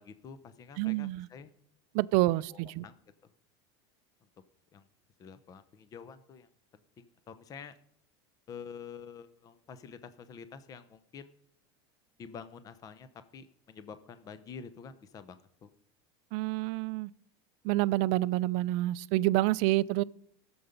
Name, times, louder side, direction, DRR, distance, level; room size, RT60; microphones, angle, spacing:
voice 1, 0.0-1.5 2.5-2.9 3.2-3.3 4.7-4.9 5.2-6.5 7.0-7.7 8.5-11.3 12.2-13.1 13.3-15.7, left 6 dB, 25° left, 0.7 m, -48 dB
voice 2, 0.8-1.3 1.9-2.8 16.3-17.1 17.6-20.0, right 17 dB, 55° right, 0.4 m, -28 dB
17.5 x 7.0 x 5.2 m
supercardioid pair, 140°, 14 cm